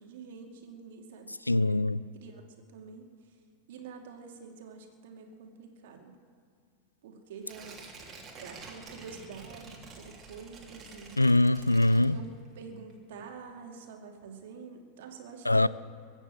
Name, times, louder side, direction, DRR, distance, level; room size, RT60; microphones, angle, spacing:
voice 1, 0.0-1.8 2.1-2.4 2.7-3.4 3.7-6.2 7.0-7.9 8.4-11.3 12.0-12.3 12.6-15.7, right 5 dB, 55° right, 2.4 m, -47 dB
voice 2, 1.5-2.0 11.2-12.2 15.5-15.7, left 2 dB, 85° left, 0.4 m, -23 dB
Tearing, 7.4-12.5 12.9-13.0, right 4 dB, 25° right, 3.2 m, -48 dB
22.5 x 8.1 x 7.6 m
figure-of-eight pair, 90°, 0 cm